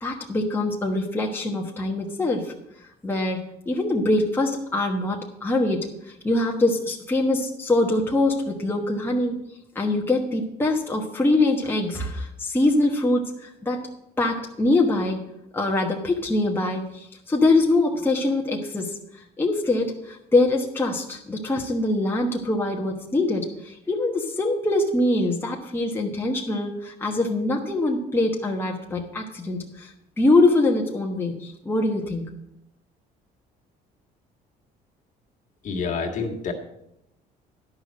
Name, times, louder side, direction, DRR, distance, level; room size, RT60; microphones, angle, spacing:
voice 1, 0.0-2.5 3.0-9.3 9.7-13.9 14.2-15.2 15.5-29.9 30.2-32.2, left 2 dB, 15° left, -1 dB, 1.2 m, -23 dB
voice 2, 35.6-36.5, left 5 dB, 45° left, 2 dB, 1.8 m, -28 dB
10.5 x 5.7 x 7.4 m, 0.81 s
cardioid pair, 110°, 17 cm